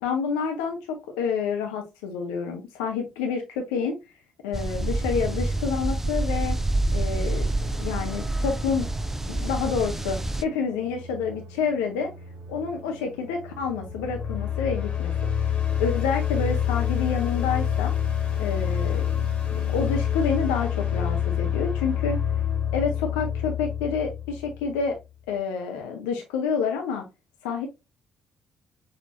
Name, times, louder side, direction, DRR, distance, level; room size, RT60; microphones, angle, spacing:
voice 1, 0.0-4.0 4.4-6.6 6.9-7.5 7.8-8.9 9.3-12.1 12.5-15.1 15.8-17.9 18.4-19.1 19.7-22.2 22.7-25.0 25.3-27.0 27.4-27.7, left 6 dB, 80° left, 3 dB, 0.6 m, -28 dB
sound 1, 4.5-10.4, right 2 dB, 10° right, 0.4 m, -27 dB
sound 2, 4.7-14.3, right 1 dB, 75° right, 0.9 m, -45 dB
sound 3, 13.8-24.8, left 9 dB, 50° left, 1.4 m, -26 dB
6.2 x 2.7 x 2.8 m, 0.24 s
hypercardioid pair, 45°, 3 cm